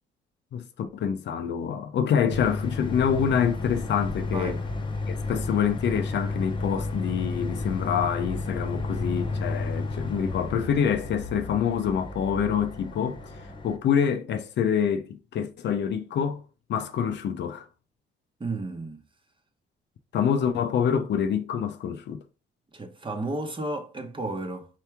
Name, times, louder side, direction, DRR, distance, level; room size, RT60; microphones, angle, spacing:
voice 1, 0.5-4.6 5.1-13.2 13.6-16.4 16.7-17.6 20.1-22.2, left 7 dB, 60° left, 0.6 m, -26 dB
sound 1, 2.3-13.8, left 3 dB, 25° left, 0.8 m, -32 dB
voice 2, 4.3-4.7 18.4-19.0 22.7-24.7, right 2 dB, 25° right, 1.0 m, -32 dB
4.6 x 2.9 x 3.4 m
cardioid pair, 90°, 20 cm